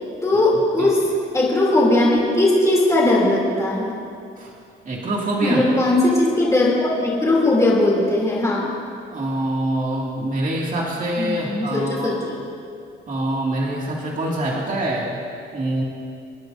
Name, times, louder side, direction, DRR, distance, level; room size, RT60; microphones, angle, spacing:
voice 1, 0.2-3.9 5.4-8.8 11.2-12.3, left 2 dB, 15° left, -4 dB, 3.1 m, -19 dB
voice 2, 4.9-5.6 9.1-12.2 13.1-15.2 15.5-15.8, right 1 dB, 40° right, -3 dB, 2.4 m, -25 dB
26.0 x 9.7 x 2.7 m, 2.4 s
cardioid pair, 90°, 20 cm